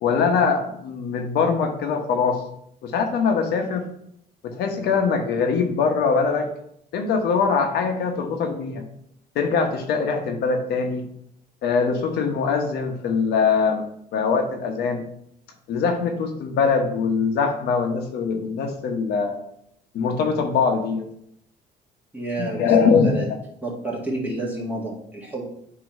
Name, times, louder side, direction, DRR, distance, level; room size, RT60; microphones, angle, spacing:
voice 1, 0.0-2.4 2.8-3.9 4.4-6.5 6.9-8.8 9.3-11.1 11.6-13.8 14.1-15.0 15.7-19.4 19.9-21.1 22.5-23.1, left 5 dB, 75° left, 4 dB, 1.0 m, -22 dB
voice 2, 22.1-23.3 23.6-25.5, right 2 dB, 10° right, -4 dB, 1.8 m, -30 dB
7.9 x 3.0 x 5.3 m, 0.72 s
cardioid pair, 110°, 17 cm